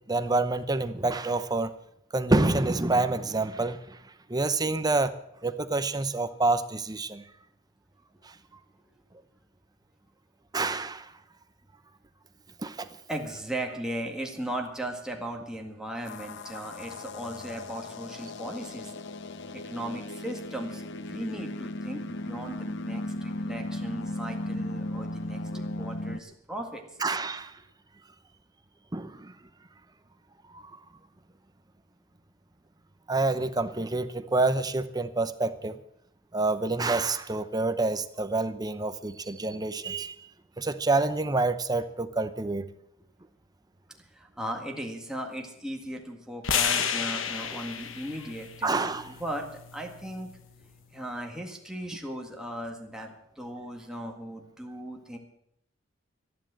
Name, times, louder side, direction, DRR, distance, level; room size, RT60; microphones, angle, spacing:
voice 1, 0.1-1.7 2.1-4.0 4.3-5.1 5.4-7.2 8.2-8.3 10.5-11.1 12.6-12.9 25.5-25.6 27.0-27.5 28.9-29.3 30.5-30.8 33.1-35.8 36.3-40.2 40.6-42.7 48.6-49.2, right 2 dB, 20° right, 10 dB, 0.8 m, -27 dB
voice 2, 13.1-19.0 19.5-26.8 44.1-50.3 50.9-55.2, right 1 dB, 5° right, 1 dB, 1.9 m, -37 dB
sound 1, 16.1-26.2, left 1 dB, 65° left, 0.8 m, -36 dB
sound 2, 46.4-50.6, left 7 dB, 85° left, 1.2 m, -32 dB
12.5 x 11.0 x 7.6 m, 0.76 s
head